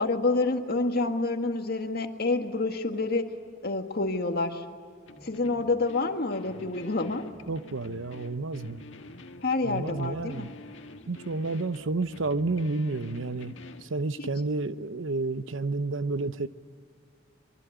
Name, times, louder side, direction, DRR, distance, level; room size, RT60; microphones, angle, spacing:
voice 1, 0.0-3.3 3.6-4.6 5.2-7.3 9.4-10.6 14.2-14.3, left 3 dB, 55° left, 1.8 m, -28 dB
sound 1, 5.1-13.9, left 2 dB, 70° left, 1.8 m, -47 dB
voice 2, 7.5-8.8 9.6-10.5 11.1-16.5, right 3 dB, 80° right, 0.9 m, -30 dB
24.5 x 23.5 x 9.3 m
head